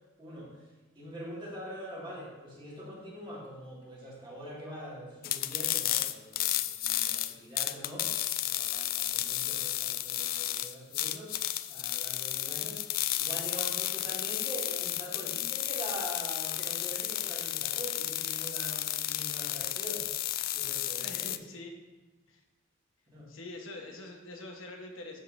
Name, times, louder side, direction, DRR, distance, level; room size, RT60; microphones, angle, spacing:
voice 1, 0.2-0.5 1.0-8.1 8.4-11.4 11.7-12.8 13.1-20.0 20.5-21.3 23.1-23.3, equal, 25° right, -5 dB, 2.2 m, -43 dB
sound 1, 5.2-21.4, left 13 dB, 45° left, 0.3 m, -32 dB
voice 2, 21.0-21.7 22.3-22.4 23.3-25.2, left 2 dB, 90° left, 1 dB, 1.2 m, -44 dB
12.5 x 5.3 x 2.7 m, 1.2 s
head